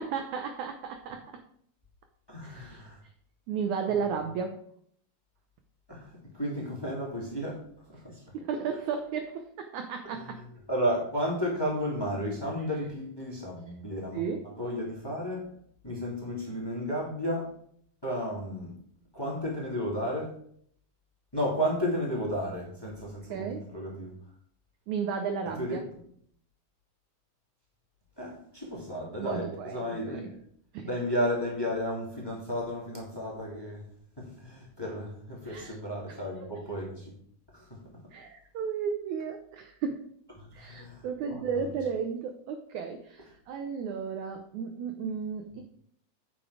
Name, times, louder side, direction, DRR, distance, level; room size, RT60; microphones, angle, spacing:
voice 1, 0.0-1.4 2.4-2.8 3.5-4.6 8.3-10.4 14.1-14.5 23.3-23.7 24.9-25.8 29.2-30.2 30.7-30.9 35.5-35.8 36.1-36.5 38.1-40.1 40.5-45.6, right 6 dB, 75° right, 6 dB, 1.8 m, -34 dB
voice 2, 2.3-3.0 3.9-4.0 5.9-7.6 7.9-8.2 10.1-14.2 14.6-15.5 15.8-17.5 18.0-18.7 19.1-20.4 21.3-24.1 25.6-25.8 28.2-30.3 30.8-33.8 34.2-37.1 37.5-37.8 40.4-41.0 41.3-41.4, equal, 10° left, -3 dB, 2.1 m, -33 dB
9.0 x 7.0 x 4.9 m, 0.65 s
omnidirectional pair, 4.3 m